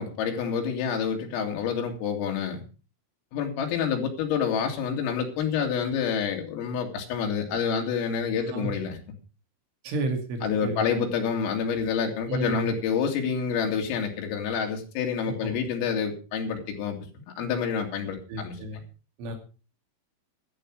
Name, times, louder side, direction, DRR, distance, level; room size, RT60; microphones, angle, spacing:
voice 1, 0.0-2.6 3.3-9.0 10.4-18.6, left 6 dB, 90° left, 1 dB, 5.1 m, -28 dB
voice 2, 9.8-10.9 12.3-12.7 15.3-15.6 18.3-18.8 19.2-19.4, right 2 dB, 75° right, 5 dB, 4.8 m, -32 dB
14.0 x 12.0 x 4.7 m, 0.35 s
omnidirectional pair, 5.8 m